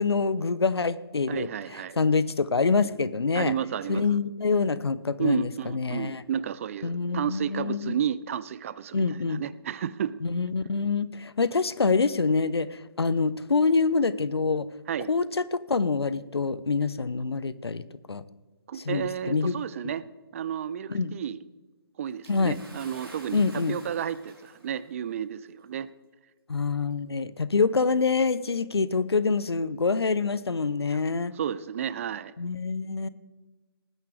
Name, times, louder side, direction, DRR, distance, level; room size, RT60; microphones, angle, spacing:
voice 1, 0.0-1.5 2.0-3.5 3.9-6.2 6.8-8.0 8.9-9.4 10.2-14.7 15.1-17.8 18.1-18.2 18.7-19.5 19.8-19.9 20.9-21.1 22.3-22.6 23.3-23.8 26.5-31.3 32.4-33.1, left 4 dB, 80° left, 16 dB, 0.7 m, -26 dB
voice 2, 1.3-2.0 3.3-4.1 5.2-10.2 14.9-15.1 18.7-20.0 20.3-21.4 22.0-23.4 23.7-25.9 30.9-31.0 31.3-32.3, right 9 dB, 35° right, 19 dB, 0.4 m, -32 dB
Bathtub (filling or washing) / Splash splatter, 22.2-24.8 25.8-25.9 26.9-27.0, right 2 dB, 70° right, 3.7 m, -49 dB
19.5 x 10.0 x 3.2 m, 1.3 s
figure-of-eight pair, 140°, 13 cm